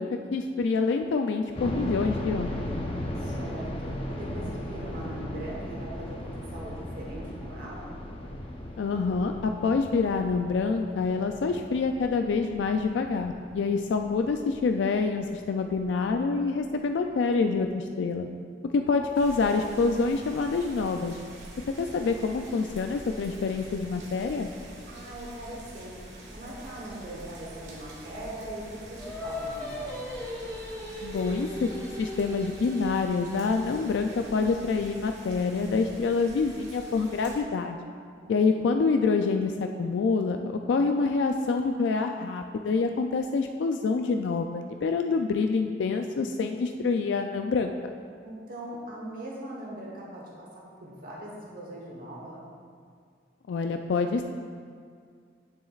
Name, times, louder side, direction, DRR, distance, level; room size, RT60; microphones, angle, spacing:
voice 1, 0.0-2.6 8.8-18.3 18.7-21.2 21.8-24.5 31.0-31.7 32.0-37.8 38.3-47.7 53.5-54.2, left 4 dB, 75° left, 5 dB, 0.3 m, -26 dB
sound 1, 1.5-16.4 16.7-16.8 17.4-17.7, left 1 dB, 30° left, 0.7 m, -37 dB
voice 2, 3.2-8.0 24.9-26.0 26.3-28.6 28.9-30.2 38.2-38.6 48.2-52.5, right 1 dB, 50° right, -4 dB, 1.1 m, -41 dB
sound 2, 19.1-37.4, right 1 dB, 70° right, 1.4 m, -45 dB
Singing, 29.0-34.4, left 1 dB, 10° left, 1.1 m, -38 dB
9.4 x 7.1 x 2.4 m, 2.1 s
head